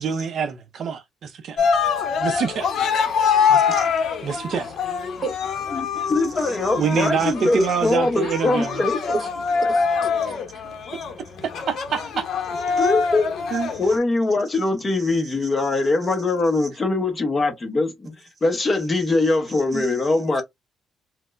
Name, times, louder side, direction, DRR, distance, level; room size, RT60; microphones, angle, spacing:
voice 1, 0.0-1.6 2.2-2.7 4.2-4.7 6.7-8.8 11.7-12.2 13.5-13.7, right 6 dB, 50° right, 0.5 m, -25 dB
Cheering, 1.6-14.0, left 6 dB, 60° left, 0.8 m, -24 dB
voice 2, 3.5-3.9 5.2-5.4 5.9-8.0 8.3-8.4 8.9-9.3 9.6-10.6 12.8-12.9 13.7-14.0 14.9-16.1 16.6-16.7 18.0-18.1 18.9-19.2 19.5-20.1, right 4 dB, 35° right, 0.8 m, -37 dB
voice 3, 5.7-9.0 12.8-18.1 18.4-20.4, left 2 dB, 25° left, 0.7 m, -22 dB
4.2 x 2.0 x 2.4 m
cardioid pair, 160°, 0 cm